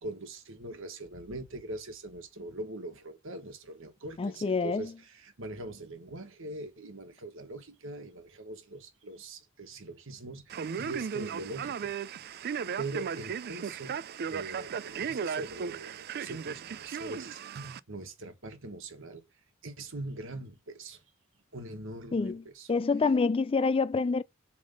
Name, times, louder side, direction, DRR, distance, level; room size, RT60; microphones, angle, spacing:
voice 1, 0.0-11.9 12.2-12.3 12.8-14.0 14.3-19.2 19.6-21.0 21.5-22.7, right 2 dB, 65° right, 1.5 m, -42 dB
voice 2, 4.2-4.9 22.1-24.2, left 4 dB, 25° left, 0.3 m, -27 dB
Male speech man speaking, 10.5-17.8, right 6 dB, 50° right, 0.4 m, -36 dB
7.3 x 3.5 x 5.2 m
head